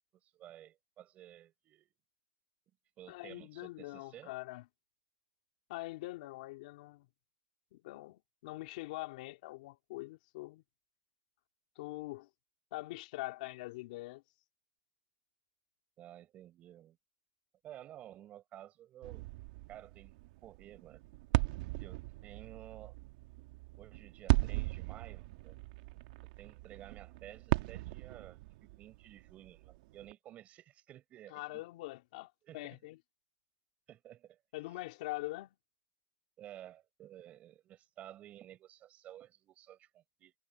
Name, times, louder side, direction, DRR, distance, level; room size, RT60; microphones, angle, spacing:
voice 1, 0.2-1.9 3.0-4.3 16.0-17.0 17.6-19.3 19.7-20.2 20.4-21.0 21.8-23.0 23.8-25.6 26.4-31.6 32.4-32.8 33.9-34.4 36.4-40.3, right 12 dB, 30° right, 5.4 m, -53 dB
voice 2, 3.1-4.6 5.7-7.1 7.7-10.6 11.7-12.3 12.7-14.2 31.3-33.0 34.5-35.6, left 20 dB, 60° left, 3.3 m, -43 dB
sound 1, 19.0-30.1, right 20 dB, 60° right, 1.3 m, -37 dB
supercardioid pair, 145°, 5 cm